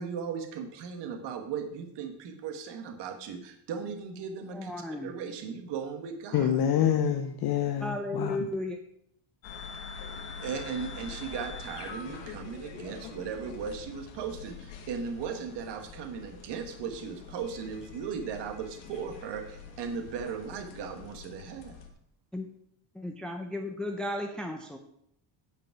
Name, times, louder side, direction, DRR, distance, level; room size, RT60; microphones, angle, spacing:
voice 1, 0.0-6.6 10.4-21.7, right 6 dB, 65° right, 6 dB, 1.4 m, -37 dB
voice 2, 4.5-5.1 7.8-8.8 22.3-22.5 23.0-24.8, left 1 dB, ahead, 4 dB, 0.5 m, -34 dB
voice 3, 6.3-8.5, left 9 dB, 55° left, 5 dB, 0.8 m, -27 dB
sound 1, 9.4-21.9, left 5 dB, 85° left, 1.7 m, -44 dB
9.4 x 5.1 x 5.9 m, 0.71 s
cardioid pair, 135°, 45 cm